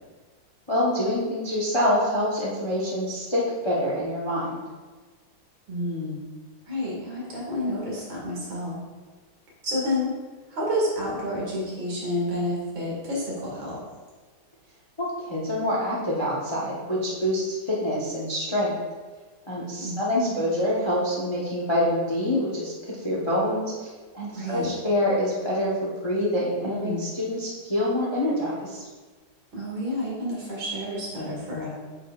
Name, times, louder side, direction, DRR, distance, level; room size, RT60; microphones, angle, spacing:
voice 1, 0.7-4.6 15.0-18.8 19.5-23.9 24.1-28.8, left 1 dB, 35° left, -5 dB, 0.4 m, -26 dB
voice 2, 5.7-6.2 6.7-8.8 9.6-10.1 10.5-13.8 19.8-20.4 24.3-24.7 26.6-27.0 29.5-31.7, left 1 dB, 65° right, -5 dB, 2.8 m, -29 dB
8.9 x 5.3 x 2.4 m, 1.3 s
omnidirectional pair, 2.4 m